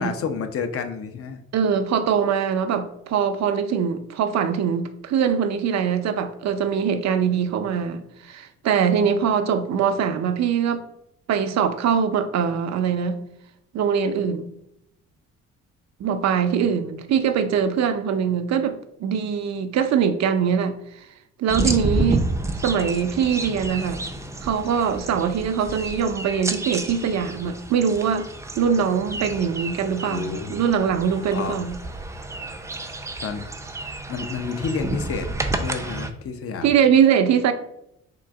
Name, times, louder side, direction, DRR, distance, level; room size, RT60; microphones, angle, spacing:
voice 1, 0.0-1.4 21.5-22.1 30.1-30.5 31.3-31.6 33.2-33.4 34.1-35.3 35.6-36.8, left 5 dB, 50° left, 0.6 m, -30 dB
voice 2, 1.5-10.8 11.3-13.2 13.7-14.5 16.0-20.8 21.4-22.3 22.6-24.0 24.4-28.3 28.5-31.8 36.6-37.5, right 7 dB, 60° right, 0.6 m, -22 dB
sound 1, 21.5-36.1, right 2 dB, 10° right, 0.5 m, -30 dB
3.8 x 2.5 x 4.6 m
cardioid pair, 90°, 30 cm